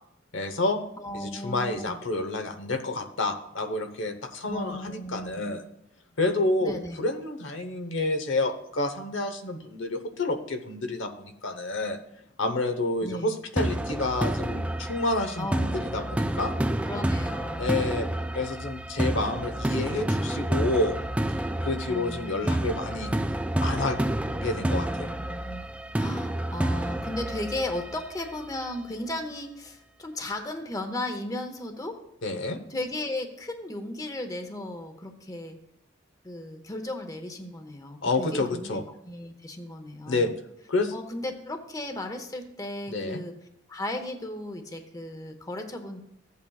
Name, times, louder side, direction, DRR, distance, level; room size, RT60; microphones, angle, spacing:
voice 1, 0.3-0.8 1.1-5.6 6.2-12.0 12.4-16.5 17.6-18.1 18.3-21.0 21.6-23.1 23.6-24.0 24.4-25.1 32.2-32.6 38.0-38.8 40.1-40.3 40.7-40.9 42.9-43.2, left 2 dB, 80° left, 7 dB, 1.0 m, -29 dB
voice 2, 1.0-2.0 4.5-5.4 6.6-7.0 13.0-13.3 15.4-16.4 16.9-17.7 21.9-22.7 24.5-25.6 26.0-32.0 32.7-35.6 36.2-40.3 40.9-43.3 43.7-46.0, left 1 dB, 20° left, 6 dB, 0.8 m, -35 dB
sound 1, 13.6-28.5, right 1 dB, 5° right, 0.3 m, -29 dB
14.5 x 8.4 x 2.3 m, 0.78 s
head